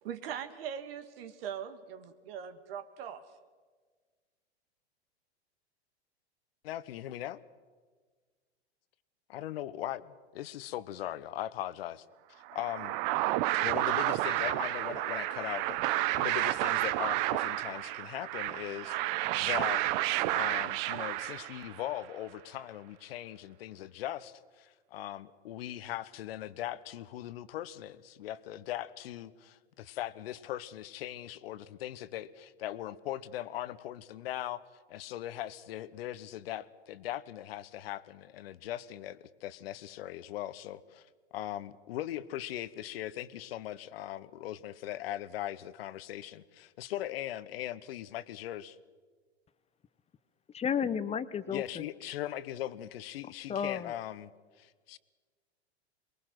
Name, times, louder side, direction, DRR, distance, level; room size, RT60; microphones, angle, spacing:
voice 1, 0.0-3.2, right 8 dB, 60° right, 8 dB, 1.7 m, -41 dB
voice 2, 6.6-7.4 9.3-12.0 12.5-13.0 13.6-19.8 20.3-34.6 34.9-48.8 51.5-54.3 54.6-55.0, left 13 dB, 65° left, 17 dB, 1.1 m, -39 dB
sound 1, 12.5-21.9, right 16 dB, 45° right, 0.9 m, -31 dB
voice 3, 50.5-51.8 53.5-53.9, left 7 dB, 20° left, 15 dB, 1.0 m, -32 dB
23.5 x 22.0 x 6.1 m, 1.5 s
hypercardioid pair, 105°, 32 cm